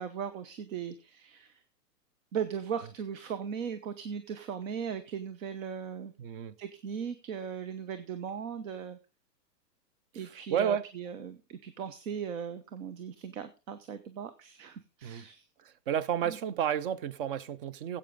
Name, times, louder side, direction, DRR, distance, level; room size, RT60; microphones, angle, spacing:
voice 1, 0.0-1.6 2.3-6.1 6.6-9.0 10.1-15.4 16.2-16.4, right 7 dB, 55° right, 1.1 m, -38 dB
voice 2, 6.2-6.6 10.5-10.9 15.0-15.3 15.6-18.0, right 9 dB, 35° right, 0.6 m, -31 dB
14.0 x 8.5 x 3.7 m
hypercardioid pair, 135°, 49 cm